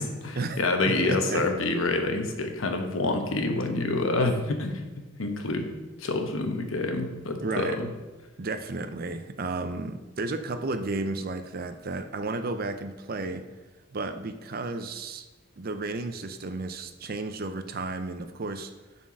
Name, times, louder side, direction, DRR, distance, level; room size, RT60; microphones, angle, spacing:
voice 1, 0.0-4.8 5.2-7.9, left 2 dB, 85° left, 4 dB, 1.1 m, -27 dB
voice 2, 0.9-1.5 7.4-7.8 8.4-13.4 13.9-15.3 15.6-18.7, right 3 dB, 45° right, 9 dB, 0.5 m, -33 dB
7.1 x 4.4 x 6.0 m, 1.2 s
head